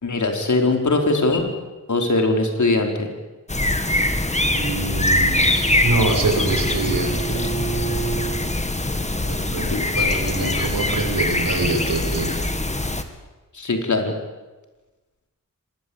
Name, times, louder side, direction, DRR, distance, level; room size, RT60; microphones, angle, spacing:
voice 1, 0.0-1.5 1.9-3.1 9.6-9.9 10.4-10.6 13.5-14.1, left 2 dB, 60° left, 3 dB, 4.8 m, -21 dB
sound 1, 3.5-13.0, left 2 dB, 20° left, 2.2 m, -23 dB
voice 2, 4.5-7.4 9.2-9.7 10.0-12.3, right 3 dB, 80° right, 3 dB, 6.5 m, -25 dB
Bowed string instrument, 4.6-8.4, right 4 dB, 35° left, 6.6 m, -31 dB
25.0 x 21.0 x 8.9 m, 1.2 s
wide cardioid pair, 75°, 33 cm